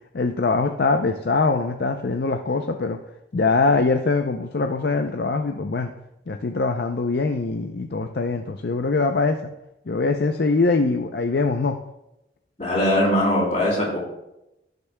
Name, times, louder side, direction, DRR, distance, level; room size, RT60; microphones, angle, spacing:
voice 1, 0.1-3.0 3.3-5.9 6.3-9.5 9.9-11.8, left 3 dB, 60° left, 5 dB, 0.5 m, -23 dB
voice 2, 12.6-14.0, left 1 dB, 35° left, -4 dB, 3.4 m, -21 dB
16.0 x 6.7 x 2.2 m, 0.88 s
head